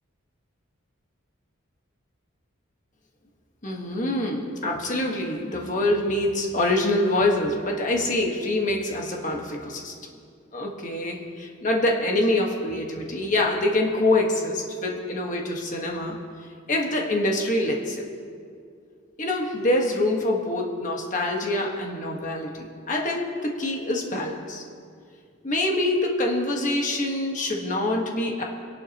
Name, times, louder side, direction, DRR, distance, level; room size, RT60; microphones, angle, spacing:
voice 1, 3.6-9.9 10.5-16.2 16.7-18.1 19.2-24.6 25.4-28.4, left 1 dB, 40° left, 0 dB, 1.5 m, -25 dB
24.0 x 11.5 x 3.0 m, 2.3 s
head